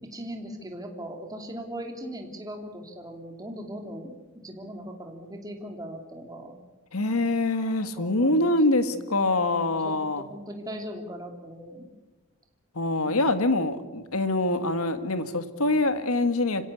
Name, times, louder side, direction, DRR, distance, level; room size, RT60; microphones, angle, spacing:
voice 1, 0.0-6.6 7.9-9.9 10.3-11.9 13.1-13.2, equal, 15° right, 3 dB, 2.9 m, -39 dB
voice 2, 6.9-10.2 12.8-16.7, left 2 dB, 80° left, 10 dB, 1.8 m, -24 dB
26.5 x 17.0 x 8.5 m, 1.1 s
head